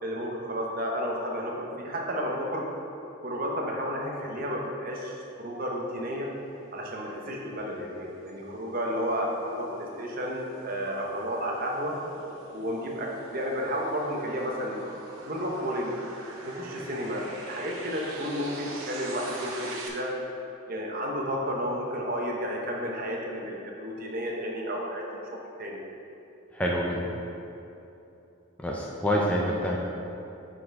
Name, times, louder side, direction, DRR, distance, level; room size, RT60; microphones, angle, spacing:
voice 1, 0.0-2.7 3.2-6.3 6.7-12.0 12.5-14.8 15.2-15.9 16.4-20.1 20.7-25.0 25.6-25.8, equal, 45° right, -1 dB, 0.8 m, -32 dB
sound 1, 6.7-19.9, right 2 dB, 80° right, 0.9 m, -44 dB
voice 2, 26.5-27.1 28.6-29.8, equal, 5° left, -3 dB, 0.5 m, -27 dB
7.7 x 4.2 x 4.6 m, 2.9 s
head